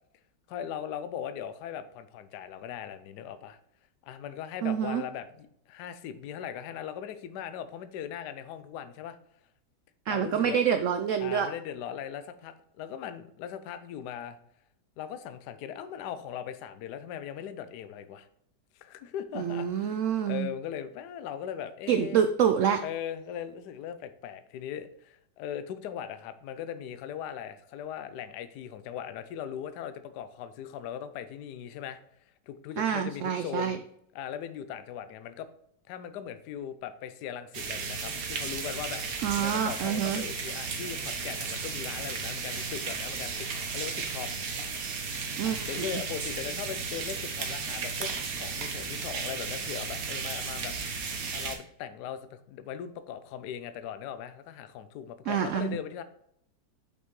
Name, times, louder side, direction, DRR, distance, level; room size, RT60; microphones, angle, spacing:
voice 1, 0.5-3.6 4.0-9.2 10.1-10.6 11.2-14.4 15.0-18.3 18.8-22.2 22.8-32.0 32.5-33.7 34.1-35.5 35.9-44.8 45.4-50.7 51.3-56.0, left 9 dB, 75° left, 11 dB, 1.1 m, -39 dB
voice 2, 4.6-5.0 10.1-11.5 19.3-20.5 21.9-22.8 32.8-33.8 39.2-40.2 45.4-45.8 55.3-55.8, right 8 dB, 85° right, 8 dB, 0.6 m, -27 dB
sound 1, 37.5-51.6, right 5 dB, 60° right, 1.3 m, -34 dB
6.6 x 5.4 x 3.1 m, 0.71 s
omnidirectional pair, 1.9 m